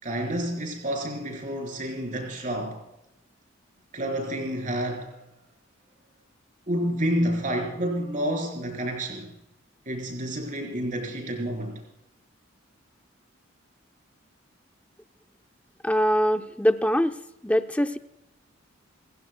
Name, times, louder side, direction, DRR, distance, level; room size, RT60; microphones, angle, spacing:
voice 1, 0.0-2.8 3.9-5.2 6.7-9.3 9.9-11.8, right 1 dB, 40° right, 4.1 m, -29 dB
voice 2, 15.8-17.2 17.4-18.0, equal, 5° left, 0.6 m, -23 dB
28.5 x 15.5 x 2.2 m
head